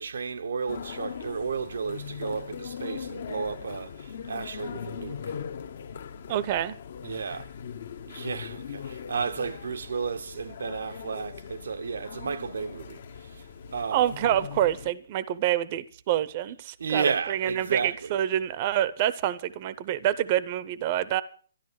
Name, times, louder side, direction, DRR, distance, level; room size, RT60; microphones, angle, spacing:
voice 1, 0.0-5.3 7.0-7.5 8.1-13.0 13.3-13.4 13.7-14.1 16.8-18.2, right 5 dB, 80° right, 0.8 m, -32 dB
sound 1, 0.7-14.9, left 7 dB, 55° left, 0.9 m, -40 dB
voice 2, 6.3-6.8 13.9-21.2, right 12 dB, 35° right, 0.6 m, -27 dB
13.0 x 11.0 x 6.5 m
hypercardioid pair, 165°, 0 cm